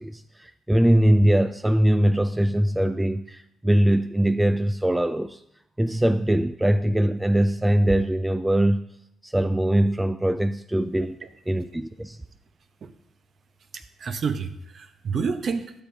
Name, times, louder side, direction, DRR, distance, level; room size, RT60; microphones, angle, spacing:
voice 1, 0.0-5.4 5.8-8.8 9.2-11.2 11.5-12.2, right 1 dB, 10° right, 0.3 m, -22 dB
voice 2, 13.7-15.7, right 5 dB, 55° right, 0.8 m, -29 dB
12.0 x 6.7 x 2.7 m
cardioid pair, 90°, 0 cm